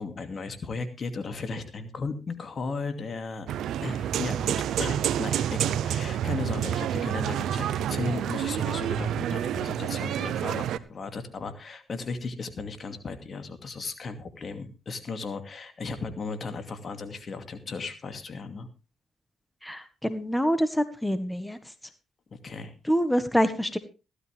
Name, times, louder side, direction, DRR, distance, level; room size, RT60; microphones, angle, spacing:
voice 1, 0.0-3.5 3.8-18.7 22.4-22.7, left 4 dB, 50° left, 8 dB, 2.5 m, -36 dB
sound 1, 3.5-10.8, right 10 dB, 75° right, 0.7 m, -28 dB
voice 2, 19.6-21.6 22.9-23.8, equal, 10° left, 11 dB, 1.6 m, -26 dB
15.5 x 13.0 x 3.5 m, 0.32 s
supercardioid pair, 55°, 0 cm